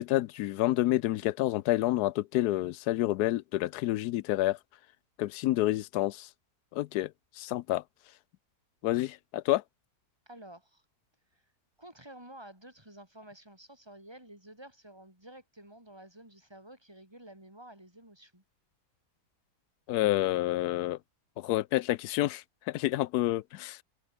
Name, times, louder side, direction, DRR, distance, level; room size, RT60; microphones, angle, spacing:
voice 1, 0.0-4.6 5.2-6.3 6.7-7.1 7.4-7.8 8.8-9.6 19.9-21.0 21.4-23.8, left 16 dB, 80° left, 1.1 m, -28 dB
voice 2, 10.3-10.8 11.3-11.4 11.8-18.4, right 1 dB, 15° right, 6.9 m, -51 dB
omnidirectional pair, 1.7 m